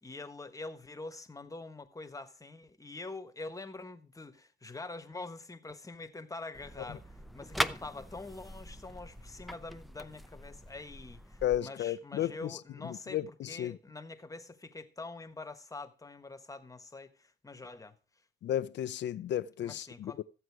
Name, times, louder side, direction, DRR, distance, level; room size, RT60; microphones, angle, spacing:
voice 1, 0.0-13.2 13.5-18.0 19.6-20.2, left 3 dB, 15° left, 1.4 m, -45 dB
sound 1, 6.5-11.6, equal, ahead, 0.6 m, -40 dB
voice 2, 11.4-13.8 18.4-20.2, left 11 dB, 65° left, 0.6 m, -34 dB
14.5 x 7.9 x 4.7 m
cardioid pair, 90°, 20 cm